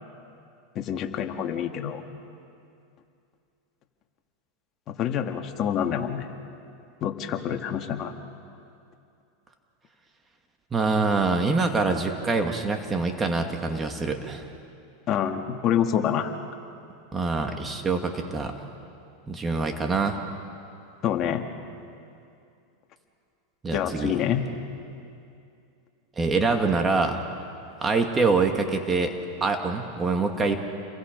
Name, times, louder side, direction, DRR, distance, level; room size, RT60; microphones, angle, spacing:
voice 1, 0.8-2.0 4.9-6.3 7.0-8.1 15.1-16.4 21.0-21.4 23.7-24.5, left 9 dB, 40° left, 4 dB, 2.1 m, -27 dB
voice 2, 10.7-14.4 17.1-18.5 19.3-20.2 23.6-24.2 26.2-27.2 27.8-29.1 29.4-30.6, right 3 dB, 20° right, 4 dB, 2.2 m, -25 dB
29.5 x 23.0 x 5.4 m, 2.5 s
hypercardioid pair, 115°, 0 cm